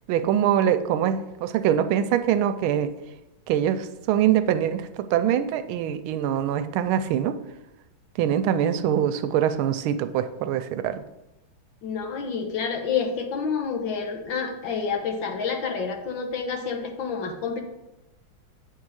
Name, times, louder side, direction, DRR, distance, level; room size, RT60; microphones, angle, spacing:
voice 1, 0.1-2.9 3.5-7.4 8.2-11.0, right 10 dB, 85° right, 10 dB, 1.4 m, -23 dB
voice 2, 11.8-17.6, left 5 dB, 70° left, 3 dB, 1.7 m, -28 dB
8.4 x 3.7 x 6.3 m, 0.97 s
omnidirectional pair, 2.3 m